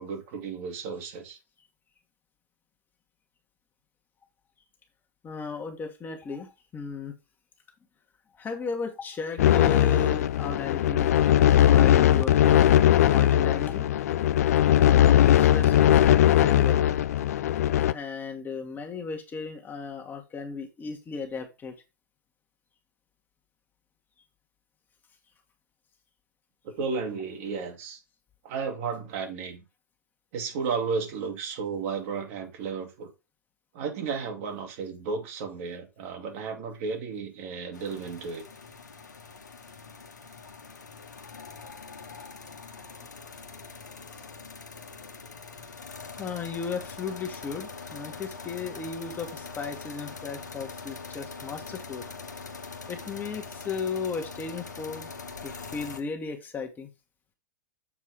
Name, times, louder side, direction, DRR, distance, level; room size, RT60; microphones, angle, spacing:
voice 1, 0.0-1.4 26.6-28.0 28.4-29.6 30.3-33.1 33.7-38.4, right 5 dB, 50° right, 2.0 m, -33 dB
voice 2, 5.2-7.1 8.4-11.1 11.6-12.7 13.1-13.9 14.7-16.8 17.9-21.7 46.2-52.1 52.9-55.1 55.4-56.9, left 5 dB, 20° left, 1.4 m, -35 dB
sound 1, 9.4-17.9, left 11 dB, 55° left, 0.5 m, -20 dB
sound 2, 37.7-56.0, left 4 dB, 75° left, 1.2 m, -43 dB
7.4 x 4.5 x 4.9 m
figure-of-eight pair, 95°, 10 cm